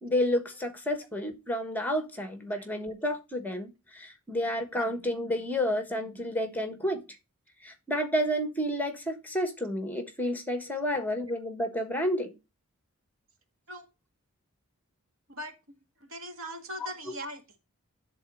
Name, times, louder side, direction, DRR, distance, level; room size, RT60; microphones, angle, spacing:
voice 1, 0.0-7.0 7.6-12.3, equal, 10° left, 1.4 m, -30 dB
voice 2, 16.0-17.6, right 1 dB, 65° right, 1.9 m, -40 dB
11.0 x 4.1 x 6.2 m
head